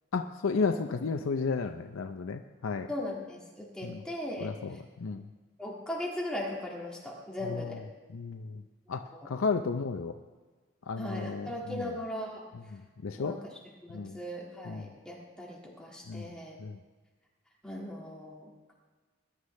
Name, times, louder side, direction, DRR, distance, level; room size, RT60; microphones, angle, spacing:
voice 1, 0.1-2.9 3.8-4.0 4.4-5.3 7.5-7.6 8.1-8.6 8.9-10.1 10.9-11.9 12.7-13.4 13.9-14.2 14.7-14.8 16.1-16.3 16.6-16.8, left 4 dB, 90° left, 6 dB, 0.5 m, -33 dB
voice 2, 2.9-4.8 5.6-7.8 9.2-9.3 11.0-12.5 13.2-16.6 17.6-18.7, left 1 dB, 5° left, -3 dB, 1.9 m, -39 dB
20.5 x 11.5 x 3.2 m, 1.3 s
head